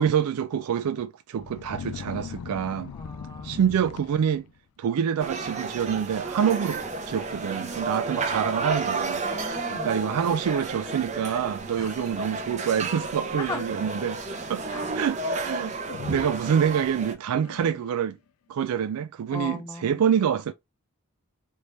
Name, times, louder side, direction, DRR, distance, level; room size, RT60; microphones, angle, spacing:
voice 1, 0.0-2.9 3.4-4.4 4.8-9.2 9.8-14.2 14.5-14.6 14.9-15.8 16.1-18.2 18.5-20.5, right 8 dB, 85° right, 0.3 m, -26 dB
sound 1, 1.4-4.6 5.3-5.5 5.8-6.3 6.5-6.6 7.4-7.5 8.0-8.1 8.6-9.1 9.9-10.0 12.9-13.9 15.9-16.9 17.4-18.2, left 7 dB, 80° left, 0.4 m, -41 dB
voice 2, 2.9-3.6 8.1-8.2 9.2-9.9 11.7-11.9 13.4-14.0 14.7-14.9 19.3-20.0, left 3 dB, 15° left, 0.4 m, -38 dB
sound 2, 5.2-17.1, right 3 dB, 30° right, 0.8 m, -32 dB
3.3 x 3.2 x 3.9 m
head